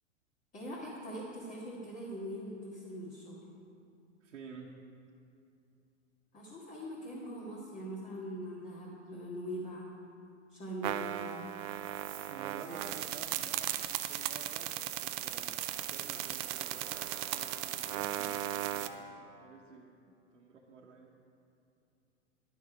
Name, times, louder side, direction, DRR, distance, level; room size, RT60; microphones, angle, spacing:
voice 1, 0.5-3.4 6.3-9.9 10.5-11.4, equal, 20° left, -6 dB, 1.8 m, -42 dB
voice 2, 4.2-4.8 12.3-21.1, right 4 dB, 85° right, -2 dB, 1.1 m, -51 dB
sound 1, 10.8-18.9, right 13 dB, 30° right, 0.4 m, -37 dB
11.0 x 6.9 x 5.0 m, 2.6 s
hypercardioid pair, 115°, 36 cm